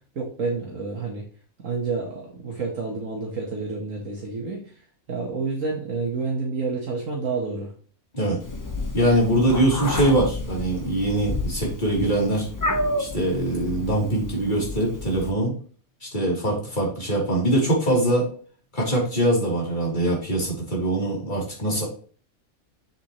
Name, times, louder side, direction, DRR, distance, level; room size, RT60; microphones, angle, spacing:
voice 1, 0.2-1.2 1.6-4.8 5.1-7.7, right 4 dB, 65° right, -1 dB, 1.8 m, -29 dB
Meow, 8.4-15.3, left 2 dB, 15° left, 1.0 m, -30 dB
voice 2, 8.9-12.5 13.0-15.5 16.0-18.3 18.7-21.8, right 1 dB, 35° left, -3 dB, 3.6 m, -23 dB
7.4 x 7.3 x 3.1 m, 0.41 s
omnidirectional pair, 1.5 m